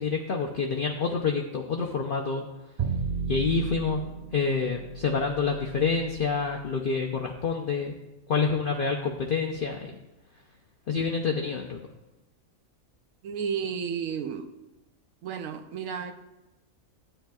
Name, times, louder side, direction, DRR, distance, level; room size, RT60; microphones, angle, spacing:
voice 1, 0.0-2.4 3.3-4.0 4.3-8.0 8.3-9.9 10.9-11.8, left 5 dB, 50° left, 1 dB, 0.7 m, -27 dB
Bowed string instrument, 2.8-8.9, right 5 dB, 65° right, 0.3 m, -36 dB
voice 2, 13.2-14.5 15.2-16.1, right 7 dB, 80° right, 7 dB, 1.0 m, -32 dB
13.0 x 9.0 x 2.3 m, 1.0 s
omnidirectional pair, 1.4 m